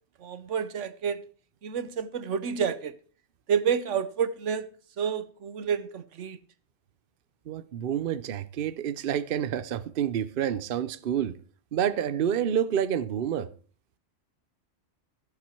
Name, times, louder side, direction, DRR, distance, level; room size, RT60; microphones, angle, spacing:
voice 1, 0.2-1.2 1.6-2.9 3.5-4.7 5.0-6.4, right 7 dB, 85° right, 1.2 m, -29 dB
voice 2, 7.5-11.4 11.7-13.5, right 9 dB, 55° right, 0.8 m, -28 dB
15.0 x 7.5 x 4.5 m
omnidirectional pair, 1.2 m